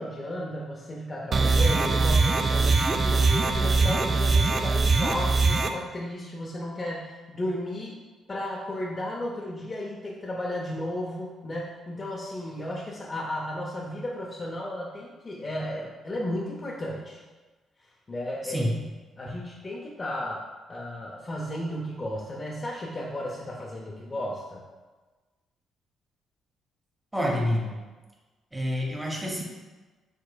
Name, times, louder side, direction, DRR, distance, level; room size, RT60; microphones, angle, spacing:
voice 1, 0.0-7.9 8.3-17.2 17.8-18.7 19.2-20.4 20.7-24.6, left 1 dB, 30° left, -4 dB, 0.6 m, -34 dB
sound 1, 1.3-5.7, right 3 dB, 40° right, 0.3 m, -22 dB
voice 2, 27.1-27.7 28.5-29.4, equal, 5° right, -2 dB, 0.8 m, -27 dB
4.9 x 3.7 x 2.2 m, 1.3 s
cardioid pair, 90°, 0 cm